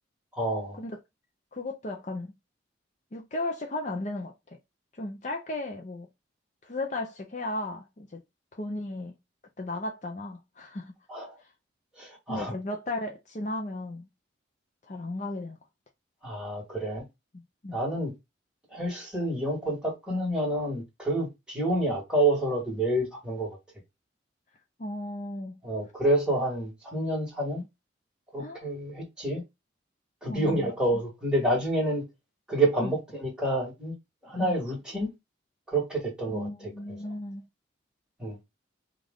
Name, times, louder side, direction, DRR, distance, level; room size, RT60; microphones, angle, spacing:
voice 1, 0.3-0.8 11.1-11.3 12.0-12.5 16.2-17.0 17.7-18.1 18.7-23.5 25.6-27.6 28.3-29.4 30.2-32.0 32.5-33.9 34.2-35.1 35.7-36.5 38.2-38.4, right 1 dB, 5° right, 1.8 m, -28 dB
voice 2, 1.5-2.3 3.1-4.6 4.9-6.1 6.6-8.2 8.5-9.2 9.6-10.9 12.3-14.1 14.9-15.6 17.6-17.8 24.8-25.6 28.4-28.7 30.3-30.7 32.8-32.9 34.4-34.5 36.3-37.4, left 2 dB, 40° left, 0.6 m, -35 dB
5.2 x 2.5 x 3.7 m
head